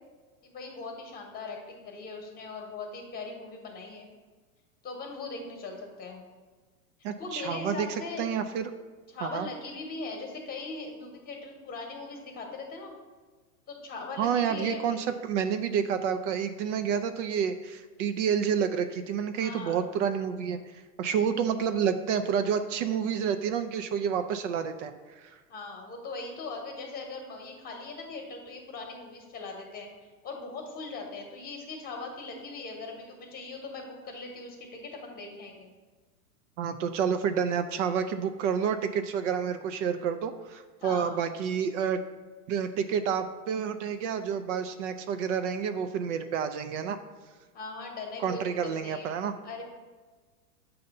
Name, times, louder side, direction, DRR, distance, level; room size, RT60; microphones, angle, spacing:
voice 1, 0.4-4.1 4.8-6.2 7.2-8.3 9.1-12.9 13.7-15.0 19.3-19.8 25.5-29.9 30.2-35.7 40.8-41.1 47.5-49.1 49.4-49.6, left 3 dB, 20° left, 2 dB, 1.1 m, -40 dB
voice 2, 7.0-7.9 8.2-8.7 9.2-9.5 14.2-20.6 21.0-25.4 36.6-42.0 42.5-47.0 48.2-49.4, right 7 dB, 55° right, 9 dB, 0.5 m, -29 dB
6.6 x 2.8 x 5.3 m, 1.4 s
hypercardioid pair, 130°, 46 cm